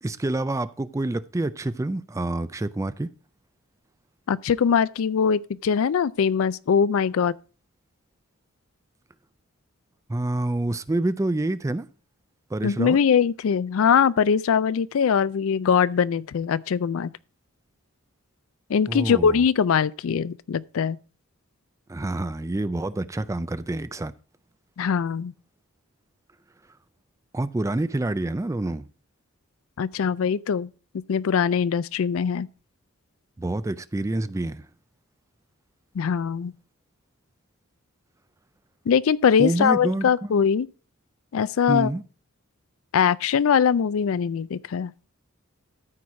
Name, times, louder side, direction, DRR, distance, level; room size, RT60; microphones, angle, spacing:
voice 1, 0.0-3.1 10.1-11.9 12.5-13.0 18.9-19.4 21.9-24.1 27.3-28.9 33.4-34.6 39.4-40.4 41.7-42.0, right 2 dB, 15° right, 0.4 m, -27 dB
voice 2, 4.3-7.3 12.6-17.1 18.7-21.0 24.8-25.3 29.8-30.7 31.1-32.5 36.0-36.5 38.9-40.7 41.3-41.9 42.9-44.9, left 7 dB, 65° left, 0.4 m, -22 dB
13.5 x 4.6 x 4.7 m
head